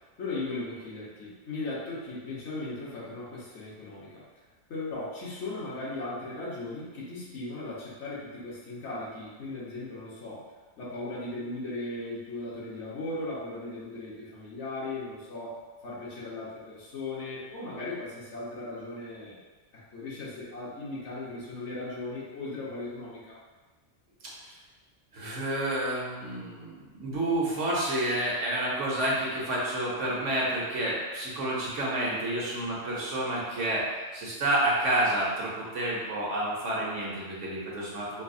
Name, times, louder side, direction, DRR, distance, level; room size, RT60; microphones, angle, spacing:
voice 1, 0.2-4.2 4.7-10.5 10.8-19.4 19.7-23.4, left 2 dB, 70° left, -7 dB, 1.3 m, -37 dB
voice 2, 25.1-33.9 34.1-38.2, right 1 dB, 80° right, -5 dB, 1.3 m, -29 dB
5.0 x 2.0 x 2.6 m, 1.3 s
omnidirectional pair, 1.2 m